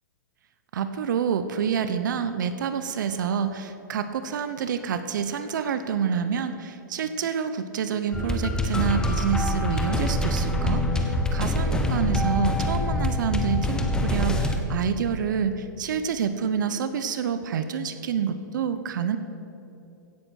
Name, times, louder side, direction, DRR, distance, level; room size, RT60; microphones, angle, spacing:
voice 1, 0.7-19.2, right 7 dB, 70° right, 10 dB, 0.8 m, -28 dB
sound 1, 8.1-14.5, left 1 dB, 5° left, 1.2 m, -25 dB
16.5 x 7.9 x 6.4 m, 3.0 s
hypercardioid pair, 130°, 11 cm